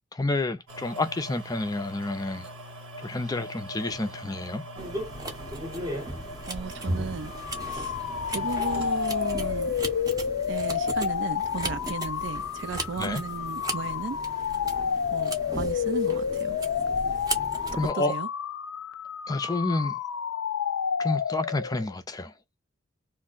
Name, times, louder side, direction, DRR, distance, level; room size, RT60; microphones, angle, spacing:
voice 1, 0.1-2.5 3.0-4.6 13.0-13.2 17.8-18.2 19.3-20.0 21.0-22.3, left 2 dB, 20° left, 0.4 m, -29 dB
sound 1, 0.7-10.7 11.3-11.4, right 1 dB, 80° right, 1.3 m, -43 dB
sound 2, 4.8-17.9, right 1 dB, 20° right, 0.7 m, -36 dB
voice 2, 6.5-7.3 7.7-7.9 8.3-9.7 10.5-14.4 15.1-16.6 17.9-18.3, right 5 dB, 60° right, 0.4 m, -35 dB
sound 3, 7.2-21.9, left 7 dB, 90° left, 0.4 m, -30 dB
2.5 x 2.1 x 3.7 m
head